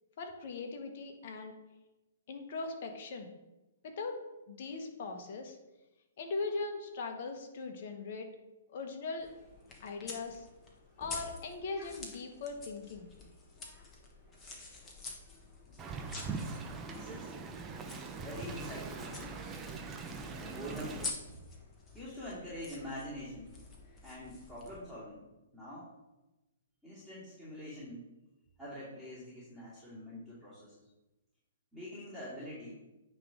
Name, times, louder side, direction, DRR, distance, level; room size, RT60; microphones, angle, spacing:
voice 1, 0.2-1.5 2.3-3.3 3.8-4.2 4.5-5.6 6.2-8.3 8.7-9.3 9.8-10.5 11.0-13.1, left 3 dB, 50° left, 4 dB, 1.3 m, -40 dB
sound 1, 9.2-24.8, left 3 dB, 20° left, 1.4 m, -48 dB
Wind, 15.8-21.1, right 4 dB, 20° right, 0.7 m, -42 dB
voice 2, 16.9-17.3 18.1-19.6 20.4-21.0 21.9-23.5 24.0-25.2 25.5-25.9 26.8-28.0 28.6-30.7 31.7-32.7, equal, 5° left, -12 dB, 2.6 m, -45 dB
9.3 x 3.4 x 5.0 m, 1.0 s
figure-of-eight pair, 125°, 0 cm